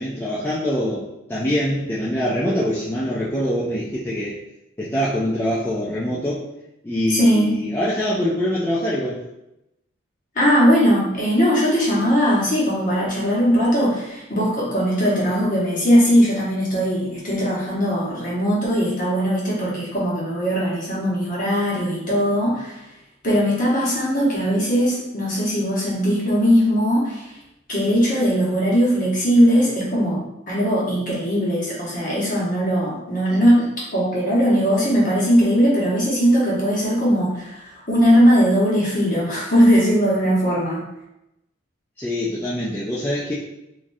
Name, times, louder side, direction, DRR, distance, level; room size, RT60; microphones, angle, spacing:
voice 1, 0.0-4.4 4.8-6.4 6.8-9.2 42.0-43.3, equal, 10° left, -8 dB, 0.3 m, -24 dB
voice 2, 7.1-7.5 10.3-22.8 23.2-27.3 27.7-40.8, equal, 40° left, -6 dB, 1.0 m, -19 dB
3.2 x 2.5 x 2.6 m, 0.89 s
head